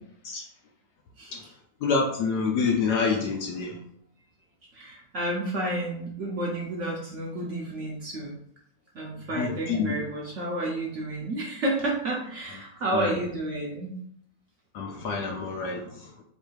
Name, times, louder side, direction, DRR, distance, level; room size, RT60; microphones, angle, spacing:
voice 1, 1.2-1.5 4.7-8.4 8.9-14.0, right 1 dB, 60° right, -2 dB, 0.8 m, -31 dB
voice 2, 1.8-3.8 9.3-10.0 12.9-13.3 14.7-16.1, left 5 dB, 75° left, 0 dB, 1.1 m, -27 dB
3.2 x 2.6 x 4.5 m, 0.67 s
omnidirectional pair, 1.9 m